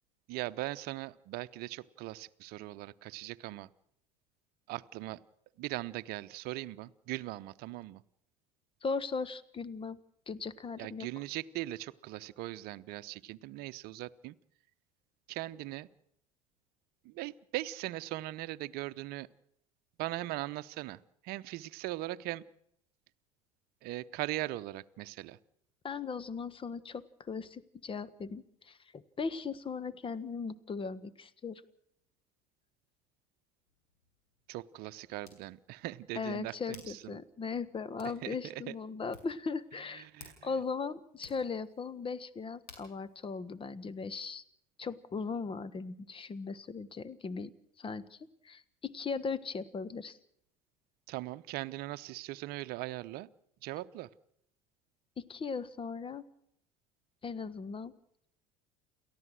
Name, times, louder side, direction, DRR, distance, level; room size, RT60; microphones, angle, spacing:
voice 1, 0.3-3.7 4.7-5.2 5.6-8.0 10.8-14.4 15.3-15.9 17.0-19.3 20.0-22.4 23.8-25.4 34.5-37.2 38.0-38.8 39.9-40.5 51.1-53.3 53.6-54.1, right 17 dB, 55° right, 14 dB, 0.8 m, -40 dB
voice 2, 8.8-10.0 10.3-11.1 25.8-31.6 36.1-40.1 40.4-44.4 44.8-47.5 47.8-48.2 48.4-50.2 55.2-56.2 57.2-57.9, left 5 dB, 25° left, 17 dB, 1.4 m, -38 dB
Hands, 33.6-44.4, left 5 dB, 75° left, 6.0 m, -60 dB
29.5 x 14.0 x 6.4 m, 0.73 s
figure-of-eight pair, 70°, 20 cm